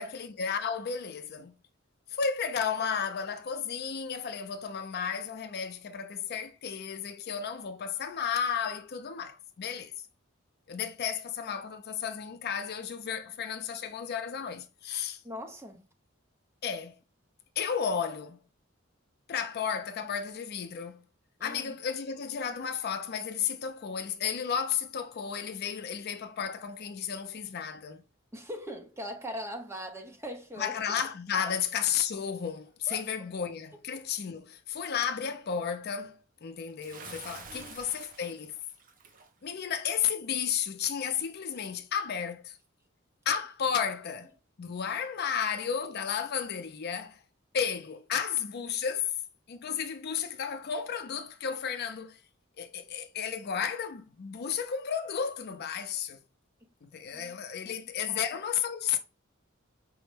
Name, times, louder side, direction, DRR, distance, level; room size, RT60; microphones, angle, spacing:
voice 1, 0.0-1.6 2.1-9.9 10.7-15.2 16.6-17.0 17.6-18.4 19.3-21.0 21.4-28.0 30.6-38.5 39.4-42.6 43.3-44.3 44.6-47.2 47.5-49.1 49.5-52.2 52.6-56.2 56.8-59.0, left 7 dB, 50° left, 0.5 m, -33 dB
voice 2, 15.2-15.8 21.4-21.8 28.3-30.8 31.4-31.5 32.9-33.1 37.5-37.8 44.9-45.0 56.6-56.7 57.1-57.3 57.6-57.8 58.1-58.2, equal, 15° right, 0.8 m, -41 dB
Bathtub (filling or washing) / Splash splatter, 36.8-39.3, right 5 dB, 45° right, 0.6 m, -48 dB
5.2 x 2.1 x 3.2 m
head